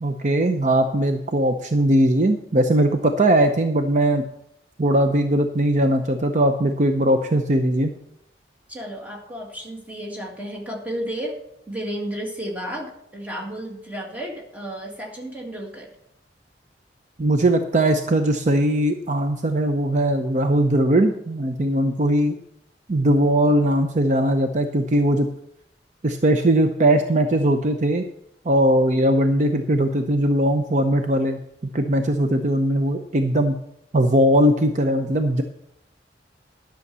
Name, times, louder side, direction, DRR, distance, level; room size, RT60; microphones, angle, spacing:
voice 1, 0.0-4.2 4.8-7.9 17.2-22.4 22.9-25.3 26.0-28.0 28.4-31.4 31.7-33.6 33.9-35.4, right 1 dB, 45° right, 6 dB, 0.6 m, -20 dB
voice 2, 8.7-11.4 11.7-15.9, equal, 10° right, 0 dB, 1.9 m, -32 dB
11.0 x 6.4 x 6.8 m, 0.77 s
head